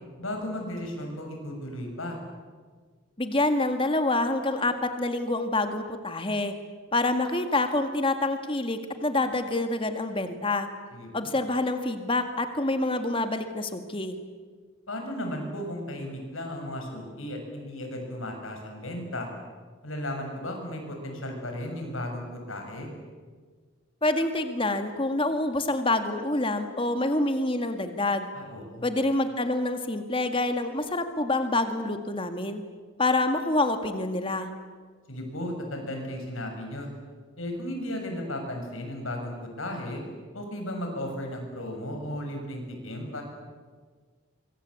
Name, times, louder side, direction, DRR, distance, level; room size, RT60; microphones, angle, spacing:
voice 1, 0.2-2.2 10.9-11.3 14.9-19.3 19.8-22.9 28.3-28.8 35.1-36.9 37.4-40.0 40.3-43.2, left 1 dB, 80° left, 3 dB, 6.8 m, -35 dB
voice 2, 3.2-6.5 6.9-10.7 11.1-14.2 24.0-28.3 28.8-32.6 33.0-34.5, left 2 dB, 25° left, 7 dB, 1.9 m, -27 dB
24.5 x 24.0 x 8.6 m, 1.5 s
head